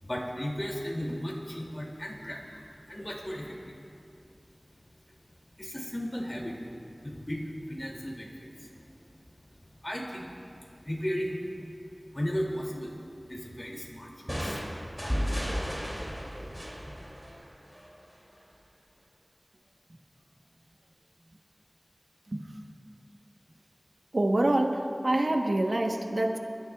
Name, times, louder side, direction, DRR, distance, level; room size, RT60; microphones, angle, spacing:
voice 1, 0.0-3.8 5.6-6.7 7.0-9.3 9.8-10.6 10.8-11.7 12.1-12.9 13.3-14.7, equal, 35° left, -1 dB, 2.5 m, -36 dB
sound 1, 14.3-18.0, equal, ahead, 2.6 m, -34 dB
voice 2, 24.1-26.4, right 1 dB, 70° right, 3 dB, 1.0 m, -26 dB
27.5 x 13.5 x 2.3 m, 2.6 s
wide cardioid pair, 50°, 0 cm